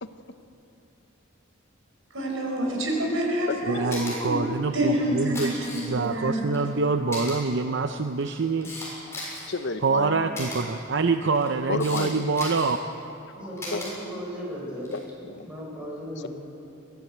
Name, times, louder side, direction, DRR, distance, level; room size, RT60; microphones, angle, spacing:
voice 1, 2.1-4.4 4.7-6.4, right 1 dB, 80° right, 0 dB, 5.4 m, -27 dB
voice 2, 3.6-8.7 9.8-12.8, right 4 dB, 60° right, 7 dB, 0.6 m, -25 dB
Camera, 3.9-4.1 5.1-6.1 6.5-6.6 7.1-7.4 8.1-9.5 10.3-10.6 11.3-12.0 12.3-12.8 13.6-13.9 14.8-15.0, left 2 dB, 15° left, 7.1 m, -36 dB
voice 3, 9.5-10.4 11.7-12.3 13.7-13.8 14.9-15.5, left 3 dB, 60° left, 9 dB, 0.9 m, -31 dB
voice 4, 13.4-14.9 15.4-16.3, equal, 5° right, -4 dB, 6.5 m, -36 dB
23.0 x 15.0 x 8.1 m, 2.8 s
head